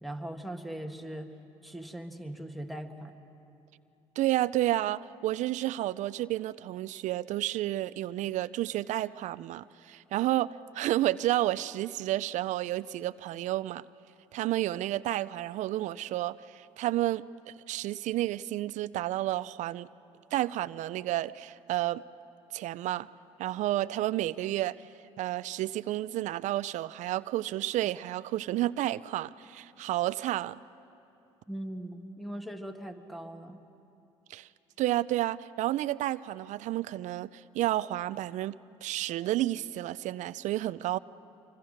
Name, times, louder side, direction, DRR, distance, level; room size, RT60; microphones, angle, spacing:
voice 1, 0.0-1.3 1.6-3.1 31.5-33.6, right 1 dB, ahead, 1.8 m, -40 dB
voice 2, 4.2-13.8 14.3-19.9 20.3-22.0 22.5-23.1 23.4-24.9 25.2-30.6 34.3-34.5 34.8-41.0, right 15 dB, 70° right, 0.5 m, -31 dB
26.0 x 23.5 x 6.5 m
supercardioid pair, 75°, 13 cm